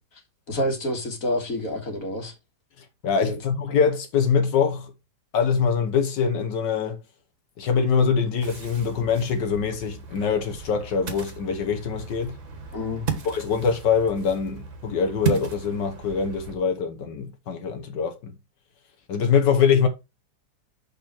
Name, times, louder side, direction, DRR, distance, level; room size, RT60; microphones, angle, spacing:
voice 1, 0.5-2.3 3.2-3.4 12.7-13.0, left 1 dB, 50° left, 2.1 m, -28 dB
voice 2, 3.0-4.9 5.3-7.0 7.6-12.3 13.2-18.3 19.1-19.9, left 6 dB, 70° left, 1.7 m, -23 dB
Ocean, 8.4-16.6, right 6 dB, 45° right, 1.7 m, -35 dB
6.7 x 5.4 x 4.3 m
omnidirectional pair, 2.0 m